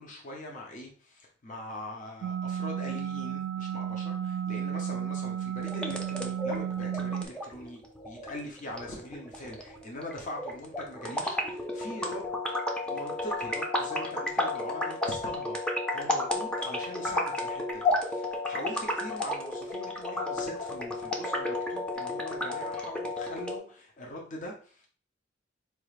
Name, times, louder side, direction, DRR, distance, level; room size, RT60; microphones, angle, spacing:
voice 1, 0.0-12.3 12.8-15.6 15.9-24.9, left 1 dB, 40° left, 0 dB, 0.7 m, -42 dB
sound 1, 2.2-7.3, right 9 dB, 75° right, 0.3 m, -33 dB
sound 2, 5.6-23.6, left 1 dB, 5° left, 0.5 m, -32 dB
4.4 x 2.4 x 3.2 m, 0.41 s
head